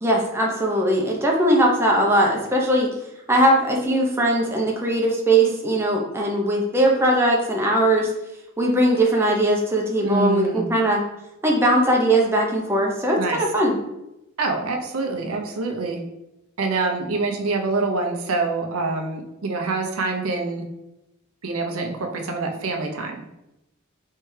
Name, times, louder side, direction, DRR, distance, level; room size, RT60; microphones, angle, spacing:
voice 1, 0.0-2.9 3.3-8.1 8.6-11.0 11.4-13.8, right 1 dB, 10° right, -1 dB, 0.7 m, -20 dB
voice 2, 10.0-10.7 13.2-13.4 14.4-16.0 16.6-20.7 21.4-23.2, right 3 dB, 90° right, 2 dB, 0.7 m, -25 dB
4.5 x 3.3 x 3.2 m, 0.90 s
head